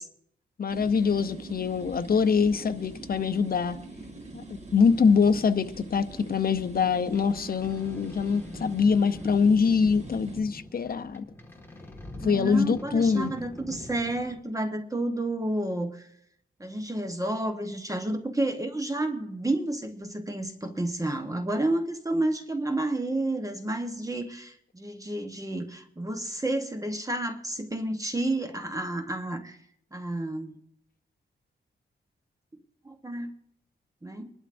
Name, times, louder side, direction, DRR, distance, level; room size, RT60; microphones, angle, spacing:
voice 1, 0.6-3.8 4.3-11.2 12.2-13.3, left 5 dB, 50° left, 0.7 m, -24 dB
sound 1, 0.7-10.4, right 2 dB, 35° right, 1.7 m, -44 dB
sound 2, 4.8-14.4, left 1 dB, 10° left, 1.7 m, -44 dB
voice 2, 12.2-16.1 16.6-29.6 29.9-30.6 32.5-32.6 32.8-33.3 34.0-34.3, right 1 dB, 15° right, 1.0 m, -30 dB
24.5 x 11.5 x 2.6 m
wide cardioid pair, 105°, 20 cm